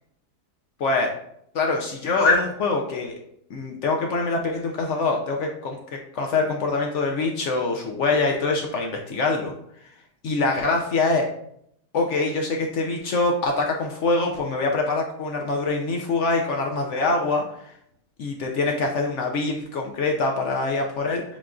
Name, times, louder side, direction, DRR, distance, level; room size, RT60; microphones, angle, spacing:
voice 1, 0.8-1.1 1.5-3.2 3.5-9.5 10.2-11.3 11.9-17.7 18.2-21.2, left 3 dB, 75° left, 1 dB, 0.6 m, -24 dB
7.4 x 2.5 x 2.3 m, 0.72 s
omnidirectional pair, 1.8 m